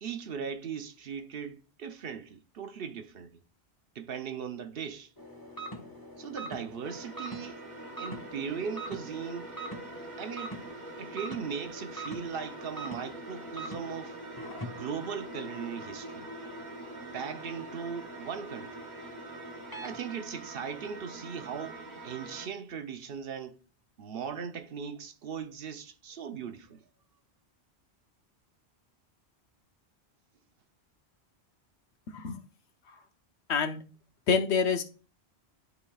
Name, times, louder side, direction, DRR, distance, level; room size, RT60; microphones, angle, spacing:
voice 1, 0.0-3.4 3.9-5.1 6.2-7.6 8.0-9.5 10.2-10.6 11.0-14.2 14.8-16.3 17.1-18.8 19.8-23.6 24.0-26.8, right 7 dB, 60° right, 0.9 m, -38 dB
sound 1, 5.2-20.0, right 1 dB, 20° left, 1.2 m, -44 dB
sound 2, 6.8-22.5, right 2 dB, 45° right, 1.3 m, -45 dB
voice 2, 33.5-33.8 34.3-34.8, left 5 dB, 90° left, 1.1 m, -27 dB
12.0 x 4.0 x 2.3 m
omnidirectional pair, 1.1 m